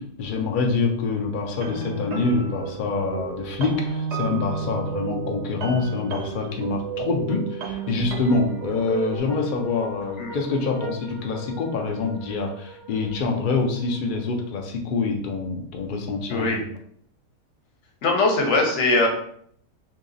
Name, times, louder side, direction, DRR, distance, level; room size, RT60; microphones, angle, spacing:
voice 1, 0.0-16.6, left 4 dB, 80° left, 2 dB, 0.4 m, -26 dB
sound 1, 1.5-9.2, right 6 dB, 65° right, 0.7 m, -32 dB
sound 2, 7.3-14.8, right 1 dB, 5° left, 0.3 m, -43 dB
voice 2, 16.3-16.6 18.0-19.1, left 2 dB, 55° left, 1 dB, 1.0 m, -21 dB
2.9 x 2.8 x 3.8 m, 0.63 s
omnidirectional pair, 1.6 m